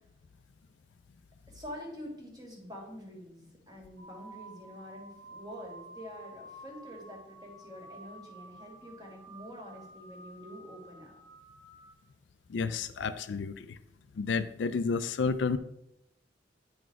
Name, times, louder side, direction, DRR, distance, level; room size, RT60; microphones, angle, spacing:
voice 1, 1.5-11.1, equal, 20° right, 0 dB, 1.9 m, -46 dB
sound 1, 4.0-11.9, right 2 dB, 80° right, 1.7 m, -51 dB
voice 2, 12.5-13.8 14.1-15.6, left 4 dB, 65° left, 12 dB, 0.4 m, -31 dB
9.3 x 4.1 x 4.5 m, 0.84 s
head